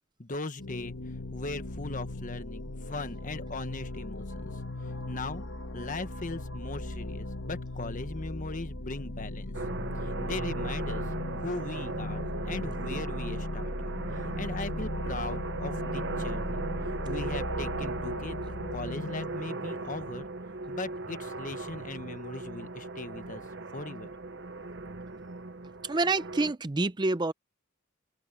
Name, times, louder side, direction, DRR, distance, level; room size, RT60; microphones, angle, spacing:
voice 1, 0.2-0.9 1.3-4.6 5.1-5.4 5.7-9.6 9.9-11.1 11.4-16.7 17.0-20.3 20.7-23.4 23.7-24.1, left 2 dB, 40° left, 1.3 m, -39 dB
sound 1, 0.6-19.5, left 1 dB, 80° left, 2.0 m, -37 dB
sound 2, 9.5-26.5, right 3 dB, 60° right, 1.1 m, -37 dB
voice 2, 25.8-27.3, right 3 dB, 20° right, 0.5 m, -27 dB
head